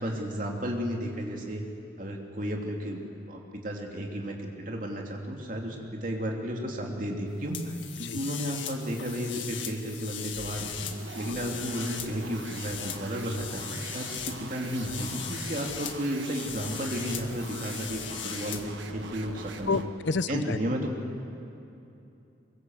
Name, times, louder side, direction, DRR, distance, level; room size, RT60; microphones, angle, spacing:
voice 1, 0.0-1.6 2.0-3.0 3.3-10.8 11.1-19.9 20.3-20.9, equal, 45° right, 0 dB, 3.0 m, -33 dB
sound 1, 7.5-18.6, left 8 dB, 90° left, 1.7 m, -39 dB
sound 2, 10.3-20.0, right 3 dB, 85° right, 1.6 m, -43 dB
voice 2, 19.7-20.6, left 4 dB, 75° left, 14 dB, 0.6 m, -29 dB
23.5 x 22.0 x 8.0 m, 2.8 s
head